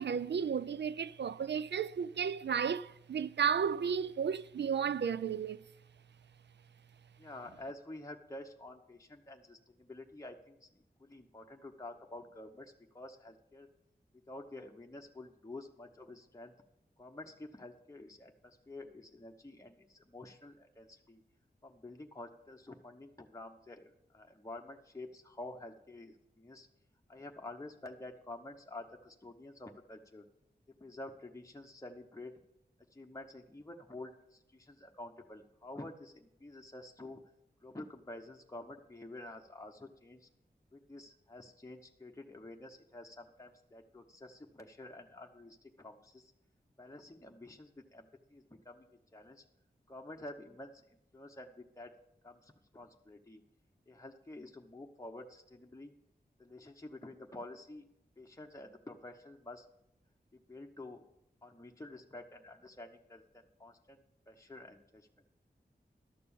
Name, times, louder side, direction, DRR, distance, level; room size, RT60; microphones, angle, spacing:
voice 1, 0.0-5.6, right 7 dB, 80° right, 0.4 m, -33 dB
voice 2, 7.2-13.7 14.3-16.5 17.0-21.2 21.6-26.7 27.1-30.2 30.8-32.3 32.9-37.2 37.6-40.3 40.7-46.3 46.8-49.4 49.9-50.8 51.1-51.9 52.2-53.4 53.9-55.9 56.4-57.8 58.2-59.7 60.3-61.1 61.4-65.1, left 2 dB, 15° left, 0.9 m, -49 dB
12.0 x 6.8 x 7.0 m
wide cardioid pair, 75°, 18 cm